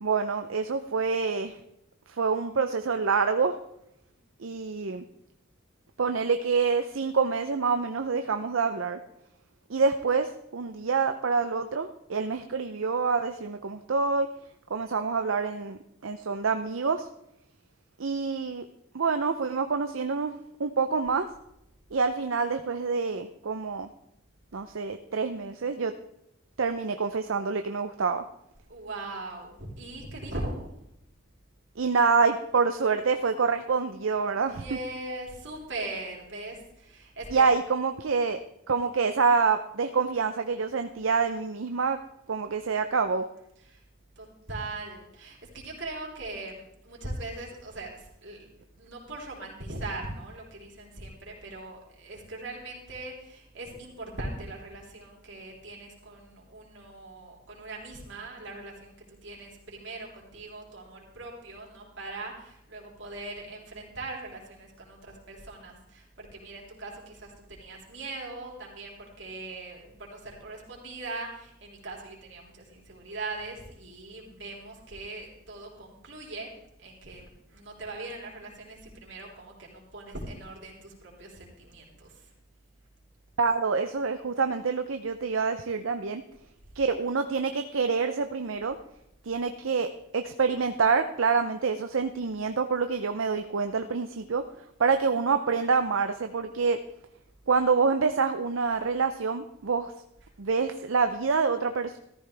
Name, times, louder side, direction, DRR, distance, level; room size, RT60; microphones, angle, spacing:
voice 1, 0.0-1.6 2.1-3.6 4.4-5.0 6.0-9.0 9.7-14.3 14.7-17.1 18.0-18.6 18.9-21.3 21.9-23.9 24.5-25.9 26.6-28.2 31.8-34.6 37.3-38.4 38.7-42.0 42.3-43.3 83.4-86.2 86.7-88.8 89.2-94.4 94.8-96.8 97.5-99.9 100.4-102.0, right 5 dB, 80° right, 7 dB, 0.7 m, -27 dB
voice 2, 28.7-30.7 34.4-37.5 43.7-43.8 44.2-48.5 48.8-76.5 76.8-82.3, right 2 dB, 60° right, -2 dB, 3.8 m, -40 dB
14.5 x 14.0 x 3.4 m, 0.80 s
head